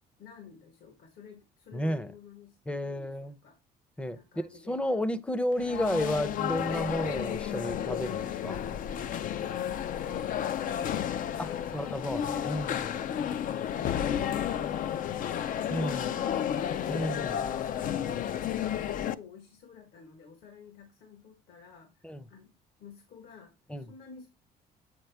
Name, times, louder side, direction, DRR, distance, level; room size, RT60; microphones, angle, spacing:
voice 1, 0.2-3.6 3.9-4.9 9.8-11.8 19.0-24.3, left 5 dB, 70° left, 1.4 m, -51 dB
voice 2, 1.7-2.1 2.7-3.4 4.0-4.2 4.7-8.6 11.4-12.8 15.7-16.1 16.9-17.4 22.0-22.3 23.7-23.9, equal, 5° left, 0.6 m, -32 dB
sound 1, 5.5-19.1, left 10 dB, 55° left, 0.5 m, -32 dB
7.9 x 4.1 x 3.4 m
cardioid pair, 110°, 17 cm